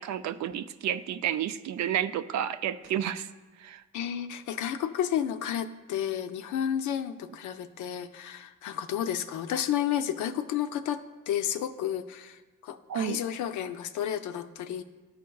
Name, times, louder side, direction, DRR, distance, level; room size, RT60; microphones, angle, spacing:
voice 1, 0.0-3.3 3.6-3.8 12.9-13.2, right 10 dB, 65° right, 12 dB, 0.4 m, -31 dB
voice 2, 3.9-14.8, left 10 dB, 75° left, 10 dB, 0.5 m, -31 dB
12.5 x 4.6 x 2.3 m, 1.2 s
cardioid pair, 90°, 30 cm